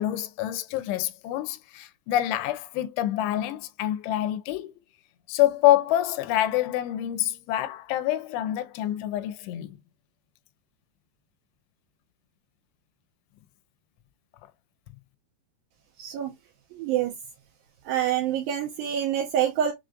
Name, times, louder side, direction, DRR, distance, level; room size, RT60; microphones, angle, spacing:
voice 1, 0.0-4.7 5.3-9.8, left 13 dB, 85° left, 2.7 m, -26 dB
voice 2, 16.0-16.3 16.7-17.1 17.9-19.7, right 10 dB, 90° right, 2.1 m, -26 dB
6.1 x 2.4 x 2.5 m
omnidirectional pair, 4.8 m